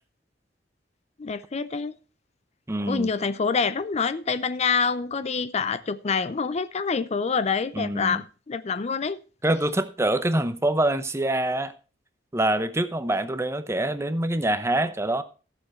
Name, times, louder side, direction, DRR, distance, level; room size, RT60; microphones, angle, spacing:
voice 1, 1.2-1.9 2.9-9.2, left 5 dB, 40° left, 0.5 m, -26 dB
voice 2, 2.7-3.1 7.7-8.2 9.4-11.7 12.3-15.2, right 1 dB, 15° right, 0.8 m, -25 dB
14.5 x 7.0 x 4.3 m
head